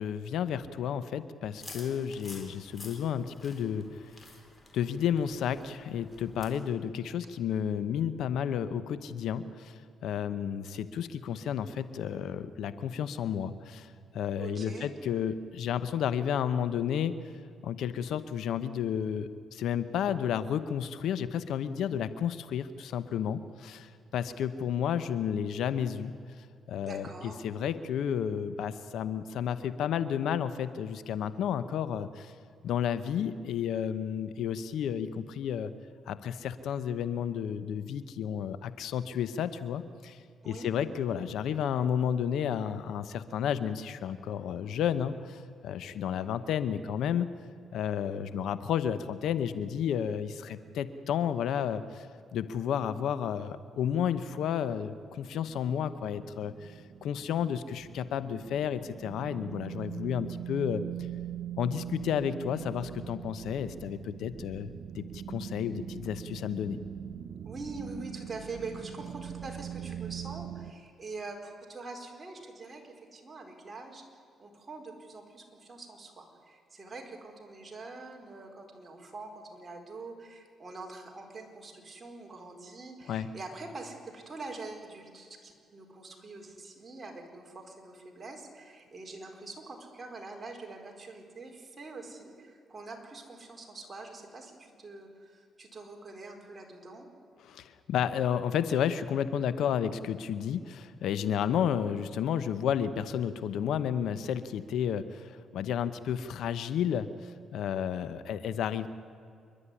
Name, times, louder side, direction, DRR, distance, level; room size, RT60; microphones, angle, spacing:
voice 1, 0.0-3.9 4.7-9.7 10.0-17.1 17.6-26.1 26.7-32.3 32.6-35.7 36.1-40.2 40.4-47.3 47.7-52.1 52.3-56.7 57.0-60.8 61.6-66.8 83.1-83.3 97.4-108.9, left 8 dB, 75° left, 13 dB, 0.9 m, -32 dB
sound 1, 1.6-6.6, left 2 dB, 25° left, 4.2 m, -50 dB
voice 2, 14.4-14.9 26.8-27.4 40.4-40.7 67.4-74.0 74.4-97.1, right 3 dB, 25° right, 1 dB, 4.4 m, -44 dB
sound 2, 55.1-70.7, right 10 dB, 50° right, 0.7 m, -42 dB
27.5 x 12.0 x 9.9 m, 2.3 s
cardioid pair, 90°, 0 cm